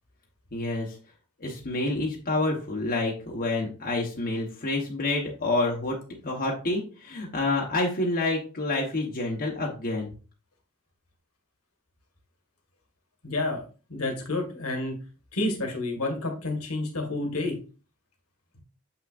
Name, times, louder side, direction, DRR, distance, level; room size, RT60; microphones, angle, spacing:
voice 1, 0.5-1.0 1.4-6.0 6.2-10.1, left 2 dB, 45° left, -2 dB, 1.2 m, -28 dB
voice 2, 13.2-13.6 13.9-14.9 15.3-17.5, left 2 dB, 70° left, 3 dB, 1.8 m, -29 dB
7.4 x 5.8 x 2.5 m, 0.36 s
head